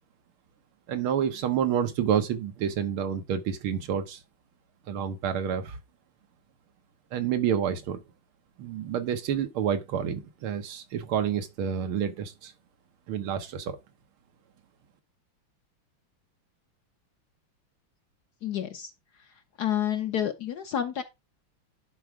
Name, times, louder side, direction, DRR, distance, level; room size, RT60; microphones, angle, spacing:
voice 1, 0.9-4.2 4.9-5.8 7.1-8.0 8.6-12.5 13.1-13.8, right 8 dB, 85° right, 1.8 m, -29 dB
voice 2, 18.4-18.9 19.6-21.0, left 10 dB, 60° left, 1.2 m, -29 dB
11.0 x 4.5 x 4.8 m
omnidirectional pair, 2.3 m